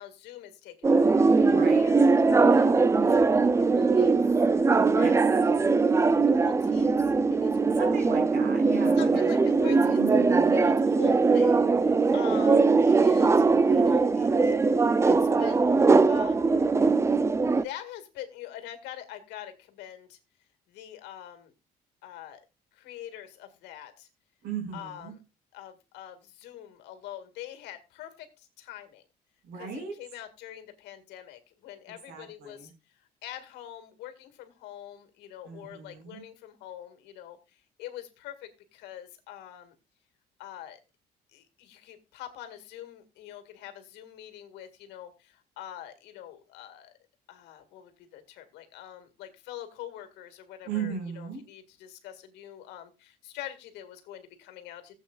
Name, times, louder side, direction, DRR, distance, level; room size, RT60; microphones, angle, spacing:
voice 1, 0.0-4.1 4.9-5.1 6.3-7.7 9.0-10.0 10.5-14.5 15.0-15.7 16.0-16.4 17.6-20.2 20.7-21.5 22.0-22.4 22.7-24.1 24.7-25.2 25.5-29.0 29.5-29.7 30.0-39.8 40.4-40.8 41.3-46.9 47.3-55.0, left 12 dB, 90° left, 8 dB, 2.0 m, -44 dB
sound 1, 0.8-17.6, right 4 dB, 15° right, 0.4 m, -21 dB
voice 2, 1.5-1.9 5.0-5.2 7.7-9.3 9.7-10.7 12.3-12.4 24.4-25.1 29.4-30.0 32.1-32.7 35.4-36.2 50.6-51.4, right 6 dB, 75° right, 3 dB, 5.4 m, -37 dB
16.0 x 8.2 x 2.4 m, 0.27 s
cardioid pair, 110°, 17 cm